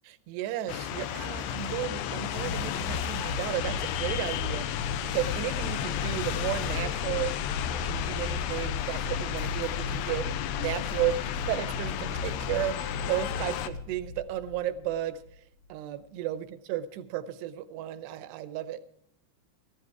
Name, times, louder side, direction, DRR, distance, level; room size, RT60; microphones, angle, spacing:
voice 1, 0.0-7.3 7.7-10.3 10.6-15.2 15.7-18.8, right 12 dB, 80° right, 12 dB, 2.6 m, -33 dB
sound 1, 0.7-13.7, left 10 dB, 85° left, 2.3 m, -33 dB
sound 2, 2.4-15.4, left 4 dB, 70° left, 2.3 m, -36 dB
14.0 x 13.5 x 4.7 m, 0.70 s
omnidirectional pair, 5.2 m